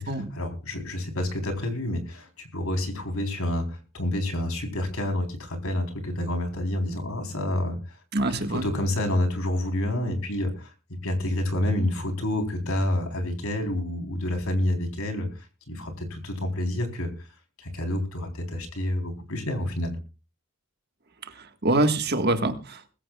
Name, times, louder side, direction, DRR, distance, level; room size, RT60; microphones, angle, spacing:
voice 1, 0.3-8.0 8.5-10.7 11.0-17.1 17.6-20.0, left 1 dB, 75° left, 4 dB, 3.8 m, -28 dB
voice 2, 8.1-8.8 21.3-22.8, right 2 dB, 45° right, 7 dB, 1.6 m, -25 dB
21.0 x 14.5 x 2.4 m, 0.33 s
head